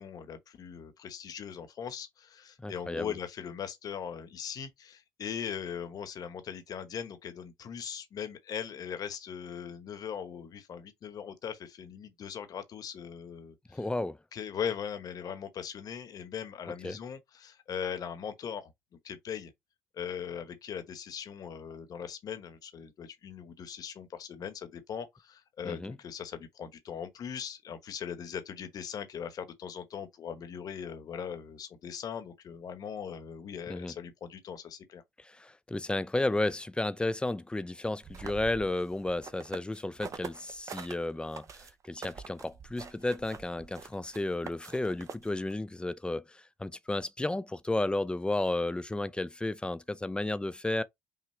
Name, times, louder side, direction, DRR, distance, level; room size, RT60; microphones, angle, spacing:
voice 1, 0.0-13.8 14.3-18.7 19.0-19.5 19.9-35.0, left 8 dB, 55° left, 1.2 m, -40 dB
voice 2, 2.6-3.2 13.7-14.2 16.8-17.0 25.6-26.0 33.7-33.9 35.2-50.8, left 2 dB, 15° left, 0.5 m, -33 dB
sound 1, 38.0-40.9 41.3-45.5, right 6 dB, 45° right, 0.9 m, -45 dB
5.8 x 2.3 x 3.2 m
supercardioid pair, 65°, 7 cm